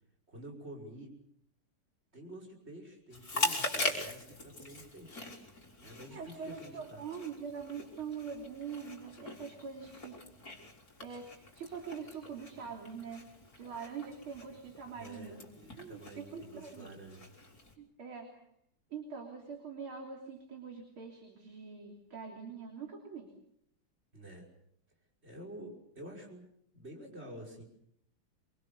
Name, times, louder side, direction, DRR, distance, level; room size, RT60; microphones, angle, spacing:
voice 1, 0.3-1.1 2.1-5.2 5.8-7.0 15.0-17.3 24.1-24.5 25.2-26.4 26.7-27.6, right 1 dB, 25° right, 0 dB, 5.8 m, -49 dB
Chewing mastication, 3.1-17.7, left 2 dB, 40° left, 4.6 m, -42 dB
voice 2, 6.1-10.2 11.0-15.4 15.8-16.9 17.8-18.5 18.9-23.3, right 6 dB, 70° right, 2 dB, 4.0 m, -44 dB
26.5 x 24.0 x 6.8 m, 0.72 s
omnidirectional pair, 2.4 m